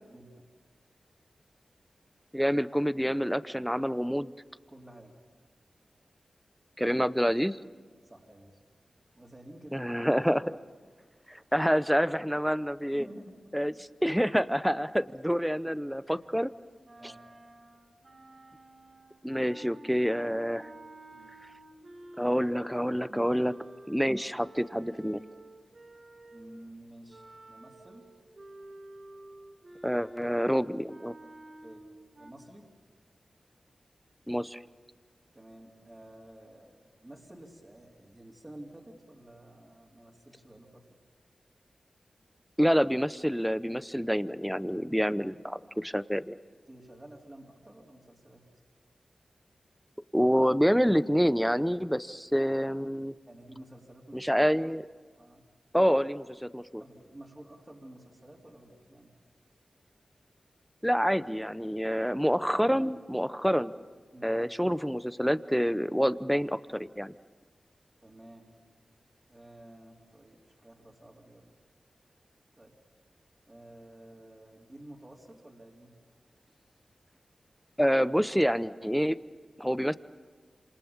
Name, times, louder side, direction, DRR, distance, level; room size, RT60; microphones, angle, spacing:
voice 1, 0.1-0.5 4.7-5.2 8.0-8.6 9.2-10.0 12.9-13.5 16.1-16.2 17.0-17.2 21.1-21.3 23.1-23.2 26.3-28.0 31.6-31.8 32.2-32.7 35.3-40.9 46.7-48.5 53.3-54.5 55.2-55.5 56.8-59.1 64.1-64.4 68.0-68.6 69.3-71.5 72.6-72.7 73.5-76.0, right 1 dB, 25° right, -4 dB, 3.7 m, -51 dB
voice 2, 2.3-4.3 6.8-7.6 9.7-10.5 11.3-13.1 13.5-13.7 14.0-16.5 19.2-20.7 22.2-23.5 23.9-25.2 29.8-31.1 34.3-34.6 42.6-46.4 50.1-53.1 54.1-54.8 55.7-56.8 60.8-63.7 64.2-67.1 77.8-79.2 79.6-80.0, equal, ahead, 15 dB, 0.8 m, -27 dB
sound 1, 16.8-26.7 27.1-32.3, right 1 dB, 45° right, 3.5 m, -50 dB
27.0 x 27.0 x 7.3 m, 1.5 s
cardioid pair, 60°, 0 cm